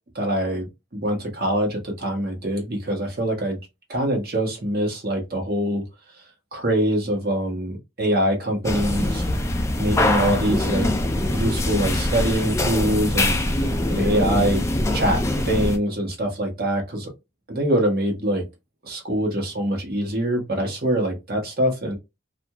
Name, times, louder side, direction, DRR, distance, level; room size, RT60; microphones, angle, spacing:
voice 1, 0.1-3.6 3.9-5.8 6.5-9.3 9.8-10.9 11.3-14.6 14.9-17.1 17.5-18.4 18.8-22.0, right 1 dB, 55° right, 1.0 m, -24 dB
sound 1, 8.6-15.8, left 1 dB, 15° left, 0.3 m, -23 dB
2.5 x 2.3 x 2.8 m
head